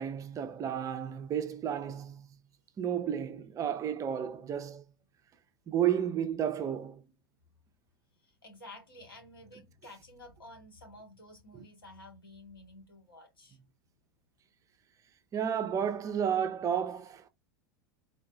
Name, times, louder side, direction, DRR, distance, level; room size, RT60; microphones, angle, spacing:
voice 1, 0.0-2.3 2.8-4.8 5.7-7.0 11.5-11.6 15.3-17.3, right 9 dB, 30° right, 0.5 m, -32 dB
voice 2, 8.2-13.6, left 2 dB, 85° left, 1.3 m, -52 dB
3.7 x 2.3 x 2.3 m
figure-of-eight pair, 85°, 12 cm